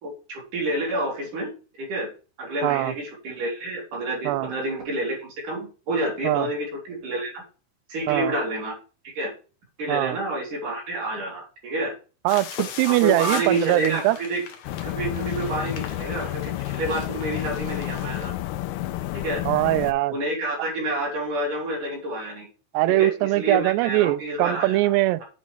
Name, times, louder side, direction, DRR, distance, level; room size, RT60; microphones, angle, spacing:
voice 1, 0.0-1.5 1.8-2.1 2.4-7.4 7.9-8.7 9.0-9.3 9.8-11.9 12.8-14.4 14.8-18.3 19.1-19.4 20.1-22.5 22.9-24.8, right 1 dB, 50° right, 4.8 m, -29 dB
voice 2, 2.6-2.9 4.2-4.5 6.2-6.5 8.1-8.3 9.9-10.2 12.3-14.2 19.5-20.1 22.7-25.2, right 17 dB, 90° right, 2.7 m, -22 dB
sound 1, 12.3-18.3, left 8 dB, 70° left, 1.7 m, -39 dB
sound 2, 14.6-19.9, left 15 dB, 85° left, 2.6 m, -30 dB
8.3 x 5.7 x 4.4 m
omnidirectional pair, 4.7 m